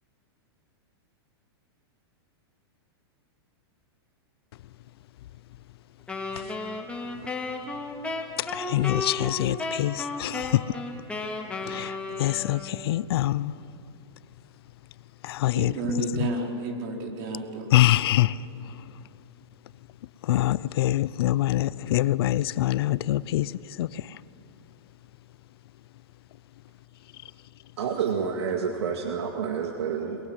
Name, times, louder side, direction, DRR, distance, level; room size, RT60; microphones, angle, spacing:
Wind instrument woodwind instrument, 6.1-12.9, left 3 dB, 10° left, 2.3 m, -34 dB
voice 1, 8.4-10.8 11.6-13.6 15.2-15.8 16.2-16.3 17.7-18.8 20.2-24.2, left 15 dB, 65° left, 0.7 m, -25 dB
voice 2, 15.5-17.7, right 2 dB, 50° right, 4.5 m, -31 dB
voice 3, 27.8-30.2, right 6 dB, 85° right, 2.1 m, -29 dB
22.5 x 22.0 x 8.1 m
hypercardioid pair, 140°, 14 cm